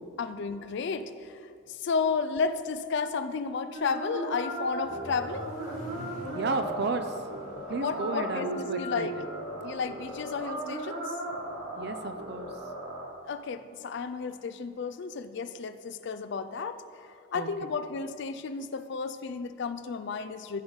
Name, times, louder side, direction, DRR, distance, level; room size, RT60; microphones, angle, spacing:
voice 1, 0.2-1.4 1.7-5.5 7.7-9.2 9.6-11.1 13.2-20.6, left 5 dB, 55° left, 12 dB, 0.4 m, -33 dB
sound 1, 3.7-13.1, right 1 dB, 85° right, 1.9 m, -36 dB
Accelerating revving vroom, 4.3-10.1, equal, 35° left, 1.5 m, -47 dB
voice 2, 6.3-7.2 7.7-9.1 9.6-9.7 11.8-12.5 17.3-17.5, right 3 dB, 50° right, 9 dB, 0.5 m, -33 dB
14.5 x 5.2 x 4.0 m, 2.4 s
head